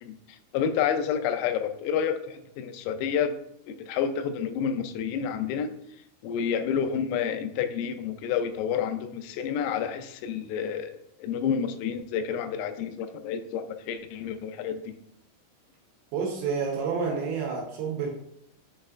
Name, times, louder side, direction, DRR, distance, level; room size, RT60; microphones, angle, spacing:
voice 1, 0.0-3.4 3.7-5.7 6.2-10.9 11.2-14.9, left 7 dB, 90° left, 8 dB, 3.3 m, -29 dB
voice 2, 16.1-18.1, right 5 dB, 75° right, 0 dB, 2.8 m, -29 dB
7.5 x 5.4 x 2.4 m, 0.76 s
omnidirectional pair, 5.9 m